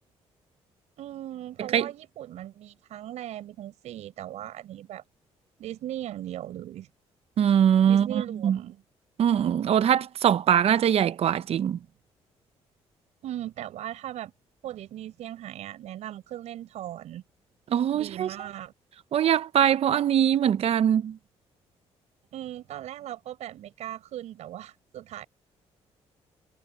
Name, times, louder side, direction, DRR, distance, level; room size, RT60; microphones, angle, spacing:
voice 1, 1.0-5.0 5.6-6.9 7.9-8.8 13.2-14.3 14.6-17.2 17.9-18.7 22.3-25.3, right 12 dB, 80° right, 7.4 m, -38 dB
voice 2, 7.4-8.1 8.4-8.6 9.2-11.8 17.7-18.3 19.1-21.2, right 9 dB, 60° right, 0.8 m, -22 dB
cardioid pair, 75°, 11 cm